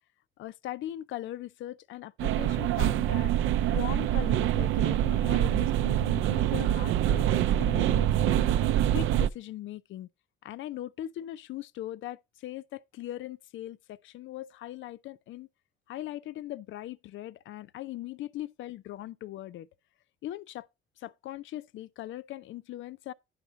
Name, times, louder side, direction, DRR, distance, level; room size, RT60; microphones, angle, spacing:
voice 1, 0.4-8.5 8.9-10.1 10.4-15.5 15.9-19.7 20.2-20.7 21.0-23.1, left 13 dB, 75° left, 0.5 m, -40 dB
sound 1, 2.2-9.3, right 12 dB, 85° right, 0.5 m, -25 dB
10.0 x 5.8 x 3.9 m
cardioid pair, 90°, 20 cm